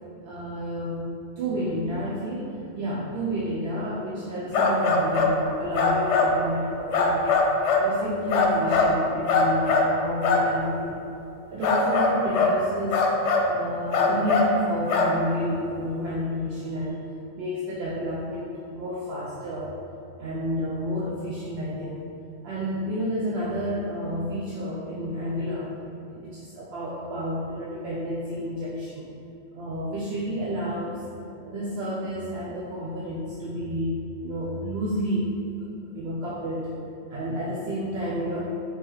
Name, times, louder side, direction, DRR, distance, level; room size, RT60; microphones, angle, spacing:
voice 1, 0.2-1.1 1.4-7.4 7.8-11.0 11.5-13.0 13.4-17.0 17.3-19.7 20.2-22.1 22.4-25.7 26.0-29.1 29.5-31.0 31.4-33.9 34.2-35.3 35.9-36.7 37.1-38.4, equal, 70° right, -6 dB, 0.8 m, -30 dB
sound 1, 4.5-5.3 5.7-6.3 6.9-7.9 8.3-8.9 9.3-9.9 10.2-10.4 11.6-12.6 12.9-13.5 13.9-14.5 14.9-15.1, left 4 dB, 85° left, 0.9 m, -21 dB
4.4 x 3.5 x 3.0 m, 2.7 s
omnidirectional pair, 1.2 m